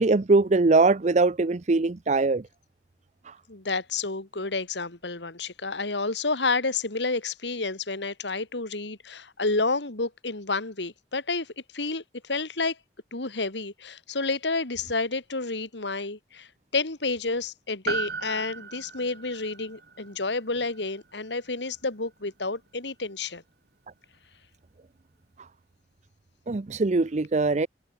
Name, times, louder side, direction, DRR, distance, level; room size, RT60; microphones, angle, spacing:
voice 1, 0.0-2.4 3.3-3.4 26.5-27.7, right 3 dB, 40° right, 0.6 m, -22 dB
voice 2, 3.5-12.8 13.1-23.4, left 3 dB, 75° left, 2.5 m, -30 dB
Piano, 17.9-22.5 22.7-22.8, right 5 dB, 60° right, 7.4 m, -37 dB
head